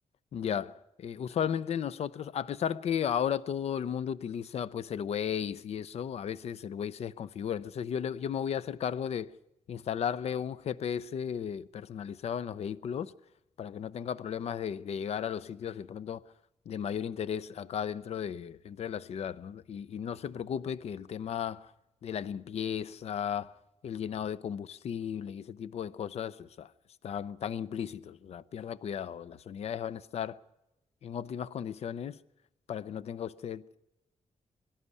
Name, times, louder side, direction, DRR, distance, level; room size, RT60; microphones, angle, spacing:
voice 1, 0.3-9.3 9.7-13.1 13.6-16.2 16.7-21.7 22.0-23.5 23.8-26.7 27.0-30.4 31.0-32.2 32.7-33.8, left 8 dB, 60° left, 0.6 m, -35 dB
23.5 x 12.0 x 9.7 m
wide cardioid pair, 155°, 12 cm